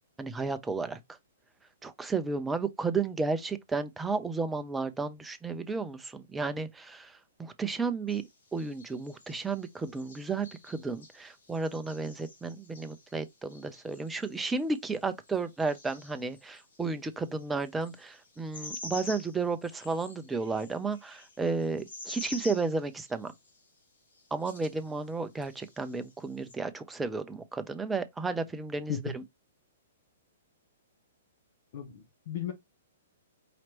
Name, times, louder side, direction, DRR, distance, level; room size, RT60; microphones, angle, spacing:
voice 1, 0.2-1.0 1.8-8.2 8.5-23.3 24.3-29.2, right 4 dB, 10° right, 0.6 m, -33 dB
sound 1, 8.1-16.8 17.2-23.6 24.1-25.1 25.4-26.5, left 2 dB, 65° left, 2.0 m, -48 dB
voice 2, 31.7-32.5, left 8 dB, 50° left, 0.8 m, -36 dB
5.0 x 2.9 x 3.0 m
figure-of-eight pair, 115°, 0 cm